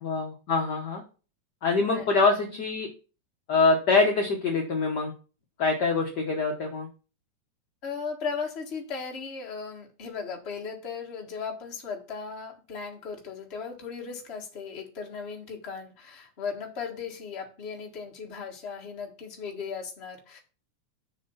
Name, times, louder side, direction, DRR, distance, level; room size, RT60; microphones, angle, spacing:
voice 1, 0.0-1.0 1.6-2.9 3.5-5.1 5.6-6.9, left 3 dB, 60° left, 2 dB, 1.0 m, -24 dB
voice 2, 7.8-20.4, left 5 dB, 30° left, 1 dB, 1.2 m, -37 dB
6.8 x 5.0 x 5.5 m, 0.36 s
omnidirectional pair, 3.3 m